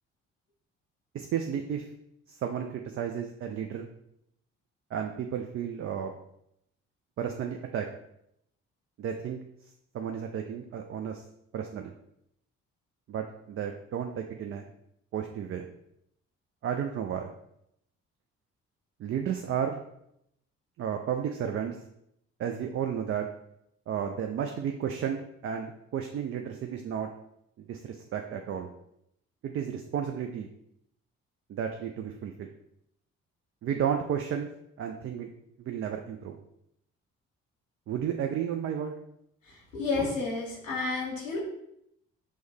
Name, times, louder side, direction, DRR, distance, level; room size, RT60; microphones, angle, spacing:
voice 1, 1.1-1.9 2.3-3.9 4.9-6.1 7.2-7.9 9.0-9.4 9.9-11.2 11.5-11.9 13.1-14.7 15.1-15.7 16.6-17.3 19.0-19.8 20.8-21.8 22.4-23.3 23.9-27.1 27.6-28.7 29.4-30.5 31.5-32.5 33.6-34.5 34.8-35.3 35.6-36.4 37.9-39.0, right 8 dB, 35° right, 4 dB, 0.4 m, -32 dB
voice 2, 39.7-41.4, left 3 dB, 90° left, -5 dB, 0.8 m, -30 dB
6.1 x 2.1 x 3.3 m, 0.77 s
figure-of-eight pair, 40°, 38 cm